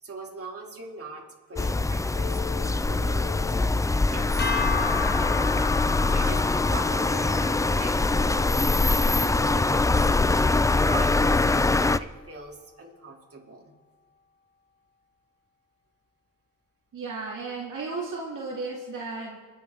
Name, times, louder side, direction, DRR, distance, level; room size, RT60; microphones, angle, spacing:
voice 1, 0.0-3.6 4.1-4.3 4.6-5.6 6.1-6.4 6.7-10.1 10.6-13.7, right 3 dB, 45° right, -1 dB, 2.9 m, -41 dB
Telephone, 1.5-1.7 2.1-2.7 3.2-3.7 4.2-4.7 5.2-5.7 6.2-6.5 7.5-7.7, left 14 dB, 90° left, 1.5 m, -41 dB
sound 1, 1.6-12.0, left 3 dB, 10° left, 0.3 m, -23 dB
sound 2, 4.4-10.7, left 6 dB, 30° left, 0.9 m, -36 dB
voice 2, 16.9-19.4, right 3 dB, 70° right, -3 dB, 2.4 m, -34 dB
26.5 x 8.8 x 3.6 m, 1.3 s
cardioid pair, 65°, 33 cm